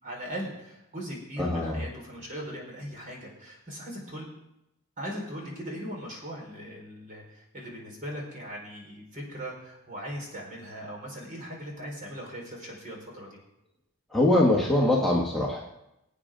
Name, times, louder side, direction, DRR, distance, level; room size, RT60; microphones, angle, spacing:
voice 1, 0.0-4.3 5.0-13.4, equal, 40° right, -2 dB, 4.6 m, -39 dB
voice 2, 1.4-1.8 14.1-15.6, left 1 dB, ahead, -4 dB, 1.5 m, -23 dB
22.0 x 8.8 x 3.8 m, 0.88 s
head